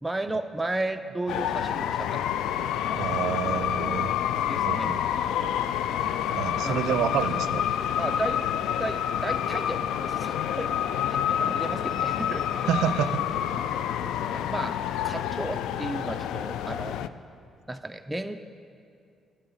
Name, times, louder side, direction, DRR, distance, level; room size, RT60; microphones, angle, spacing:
voice 1, 0.0-2.2 4.5-4.9 6.6-7.1 8.0-8.4 8.8-10.8 11.1-12.7 13.8-14.0 14.3-14.8 15.0-17.0 17.7-18.4, right 2 dB, 10° right, 6 dB, 0.4 m, -34 dB
sound 1, 1.3-17.1, left 10 dB, 85° left, 0.3 m, -28 dB
voice 2, 2.9-4.1 4.7-5.0 6.3-7.7 12.7-13.3, right 10 dB, 85° right, 13 dB, 0.4 m, -28 dB
9.0 x 7.8 x 8.1 m, 2.4 s
cardioid pair, 90°, 0 cm